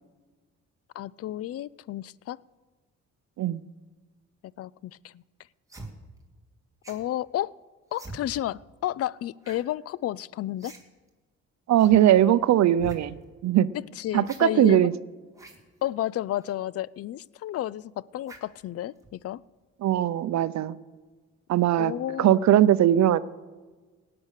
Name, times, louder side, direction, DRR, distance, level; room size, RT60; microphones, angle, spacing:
voice 1, 0.9-2.4 4.6-5.2 6.9-7.5 7.9-10.7 14.0-14.9 15.8-19.4 21.8-22.5, left 13 dB, 50° left, 23 dB, 0.4 m, -32 dB
sound 1, 5.7-5.9 6.8-7.1 7.9-8.2 9.4-9.6 9.9-10.0 10.6-10.8 11.1-11.2 11.8-12.0 12.7-13.0 14.2-14.4 15.3-15.6 16.4-16.5 18.2-18.5 19.0-19.2, right 2 dB, 10° right, 2.6 m, -44 dB
voice 2, 11.7-13.2 13.4-13.7 14.1-14.9 19.8-20.8 21.5-23.2, right 12 dB, 65° right, 15 dB, 0.6 m, -20 dB
18.0 x 8.7 x 6.6 m, 1.3 s
cardioid pair, 90°, 30 cm